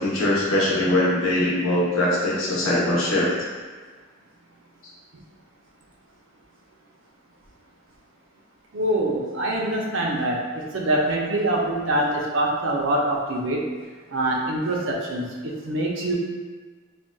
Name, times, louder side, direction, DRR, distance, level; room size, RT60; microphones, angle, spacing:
voice 1, 0.0-3.3, left 1 dB, 75° left, -5 dB, 0.8 m, -22 dB
voice 2, 8.7-13.7 14.1-16.2, right 1 dB, 65° right, -1 dB, 0.5 m, -24 dB
3.8 x 2.2 x 2.2 m, 1.4 s
head